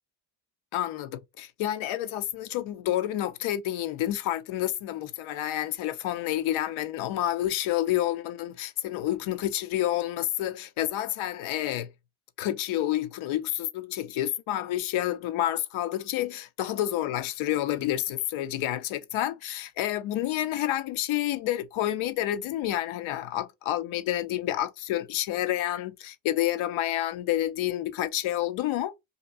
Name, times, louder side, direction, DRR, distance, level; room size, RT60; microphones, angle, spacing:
voice 1, 0.7-11.9 12.4-28.9, left 13 dB, 70° left, 0.6 m, -29 dB
2.9 x 2.5 x 3.6 m
supercardioid pair, 65°, 49 cm